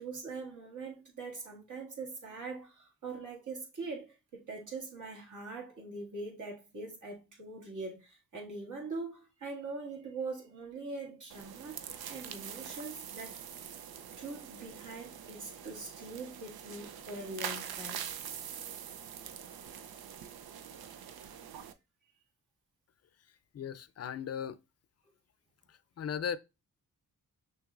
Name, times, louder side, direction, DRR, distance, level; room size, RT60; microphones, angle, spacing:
voice 1, 0.0-13.4 14.2-18.1, right 3 dB, 55° right, 2.0 m, -42 dB
sound 1, 11.3-21.7, right 8 dB, 80° right, 0.6 m, -44 dB
voice 2, 23.5-24.6 26.0-26.4, left 8 dB, 45° left, 0.5 m, -36 dB
6.0 x 3.0 x 2.4 m
cardioid pair, 80°, 36 cm